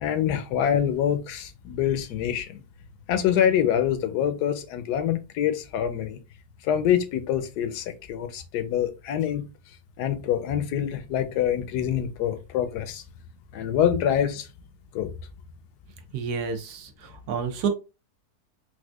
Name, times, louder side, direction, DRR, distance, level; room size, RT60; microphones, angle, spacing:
voice 1, 0.0-2.6 3.1-6.2 6.6-9.4 10.0-13.0 13.5-14.5 14.9-15.1, left 9 dB, 80° left, 1.2 m, -25 dB
voice 2, 16.1-17.7, right 6 dB, 80° right, 1.2 m, -30 dB
4.2 x 2.4 x 2.3 m
omnidirectional pair, 1.7 m